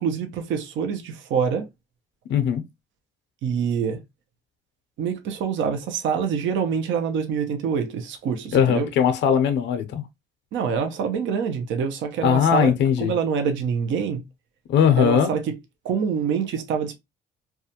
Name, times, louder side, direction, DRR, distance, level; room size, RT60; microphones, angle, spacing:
voice 1, 0.0-1.7 3.4-4.0 5.0-8.9 10.5-14.2 15.0-15.6 15.8-17.0, right 6 dB, 70° right, 0.6 m, -25 dB
voice 2, 2.3-2.6 8.5-10.0 12.2-13.1 14.7-15.3, left 8 dB, 65° left, 0.5 m, -19 dB
2.3 x 2.2 x 2.7 m
supercardioid pair, 70°, 20 cm